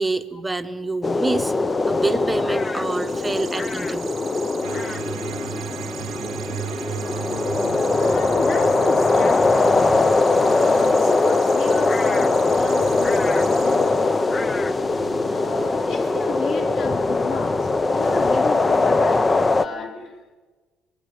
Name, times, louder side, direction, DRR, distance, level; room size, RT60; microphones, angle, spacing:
voice 1, 0.0-1.5 1.9-4.2, right 2 dB, 10° right, 1.1 m, -27 dB
sound 1, 1.0-19.7, left 3 dB, 20° left, 0.6 m, -21 dB
sound 2, 2.6-14.4, right 8 dB, 40° right, 0.9 m, -41 dB
sound 3, 4.6-15.7, right 12 dB, 75° right, 0.6 m, -37 dB
voice 2, 7.9-10.0 10.6-14.0 14.7-19.3 19.6-20.3, left 3 dB, 50° left, 3.5 m, -33 dB
26.5 x 20.0 x 5.1 m
cardioid pair, 140°, 0 cm